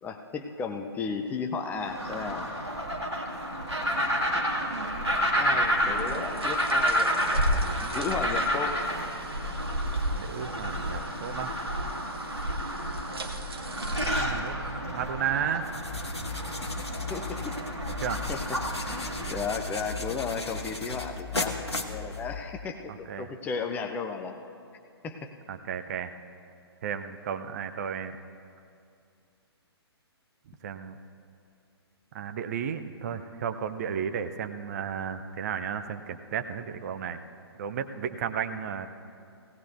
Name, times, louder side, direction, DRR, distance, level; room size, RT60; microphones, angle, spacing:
voice 1, 0.0-2.5 5.3-8.9 17.1-17.6 18.3-22.9 23.2-24.4 25.0-25.3, left 5 dB, 10° left, 4 dB, 0.5 m, -34 dB
sound 1, 1.8-19.5, equal, 90° right, 1.9 m, -30 dB
sound 2, 5.3-15.3, right 3 dB, 65° right, 1.2 m, -45 dB
voice 2, 10.1-11.5 13.9-15.6 18.0-18.2 22.9-23.3 25.5-26.1 26.8-28.2 30.5-31.0 32.1-37.2 37.6-38.9, right 8 dB, 40° right, 8 dB, 0.6 m, -33 dB
sound 3, 15.6-22.6, left 3 dB, 80° left, 1.2 m, -36 dB
18.5 x 17.5 x 2.6 m, 2.5 s
figure-of-eight pair, 125°, 14 cm